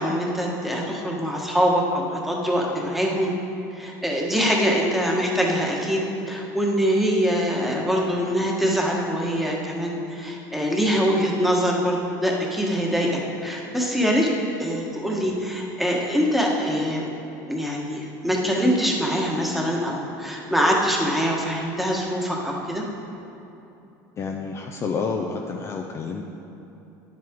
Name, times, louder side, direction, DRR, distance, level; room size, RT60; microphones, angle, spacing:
voice 1, 0.0-3.3 3.7-14.3 14.6-17.1 17.4-22.8, equal, ahead, -2 dB, 1.4 m, -24 dB
voice 2, 24.2-26.2, left 5 dB, 30° left, 2 dB, 0.5 m, -29 dB
10.0 x 7.6 x 3.7 m, 2.9 s
supercardioid pair, 115°, 9 cm